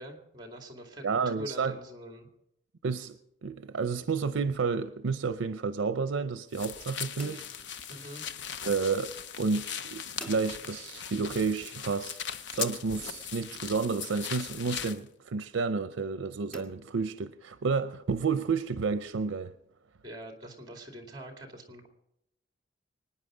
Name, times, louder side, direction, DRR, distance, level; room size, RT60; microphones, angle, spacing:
voice 1, 0.0-1.0 1.3-2.3 7.9-8.2 20.0-21.9, equal, 20° right, 2.3 m, -44 dB
voice 2, 1.0-1.7 2.8-7.4 8.6-19.5, right 4 dB, 85° right, 0.6 m, -31 dB
sound 1, 6.5-15.0, left 8 dB, 70° left, 0.6 m, -39 dB
sound 2, 7.2-8.5 10.2-11.2 12.6-13.8 16.5-17.7, right 1 dB, 5° left, 1.6 m, -49 dB
24.5 x 9.9 x 5.0 m
head